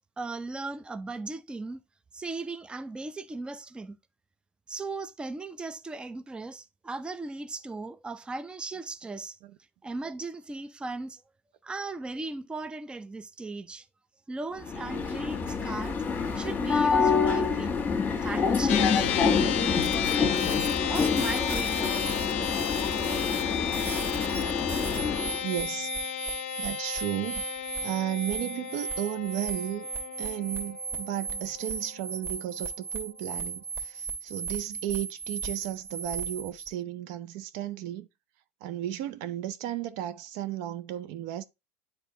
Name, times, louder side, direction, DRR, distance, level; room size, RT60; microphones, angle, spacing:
voice 1, 0.2-1.8 2.1-4.0 4.7-9.4 9.8-11.2 11.6-13.9 14.3-16.0 16.3-17.8 18.1-20.4 20.9-22.0, right 3 dB, 15° right, 0.6 m, -37 dB
sound 1, 14.6-25.4, left 5 dB, 25° left, 1.6 m, -27 dB
sound 2, 18.7-32.2, left 10 dB, 75° left, 0.5 m, -33 dB
sound 3, 19.8-36.7, right 5 dB, 40° right, 2.6 m, -37 dB
voice 2, 25.4-25.9 26.6-27.4 27.8-29.9 30.2-38.1 38.6-41.4, right 13 dB, 60° right, 0.6 m, -34 dB
10.0 x 3.8 x 2.9 m
hypercardioid pair, 75°, 7 cm